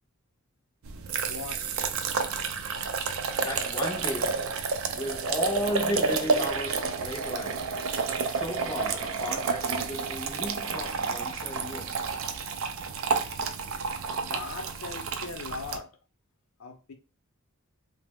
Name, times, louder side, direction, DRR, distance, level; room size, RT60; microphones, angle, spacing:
sound 1, 0.8-15.8, right 5 dB, 70° right, 0.4 m, -30 dB
voice 1, 1.3-1.6 14.1-15.9 16.6-16.9, left 4 dB, 75° left, 0.6 m, -39 dB
voice 2, 3.4-7.9 8.2-12.0, equal, 20° left, 0.4 m, -35 dB
2.8 x 2.0 x 3.4 m
head